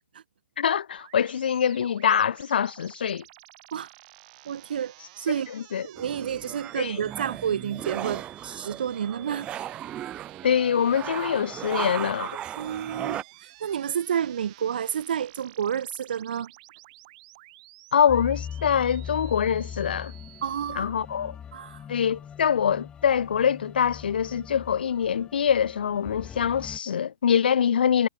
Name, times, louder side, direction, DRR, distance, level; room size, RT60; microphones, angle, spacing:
voice 1, 0.6-3.2 5.5-5.9 6.8-7.0 10.4-12.4 17.9-20.1 20.7-21.3 21.9-28.1, left 8 dB, 65° left, 0.9 m, -24 dB
sound 1, 1.0-20.7, right 21 dB, 40° right, 7.0 m, -52 dB
voice 2, 4.5-5.5 5.8-9.5 12.6-13.2 13.6-16.5 20.4-20.9 21.5-21.8, right 8 dB, 60° right, 1.9 m, -30 dB
sound 2, 6.0-13.2, right 11 dB, 20° right, 0.9 m, -36 dB
sound 3, 18.1-26.8, left 8 dB, 15° left, 2.4 m, -41 dB
hypercardioid pair, 130°, 6 cm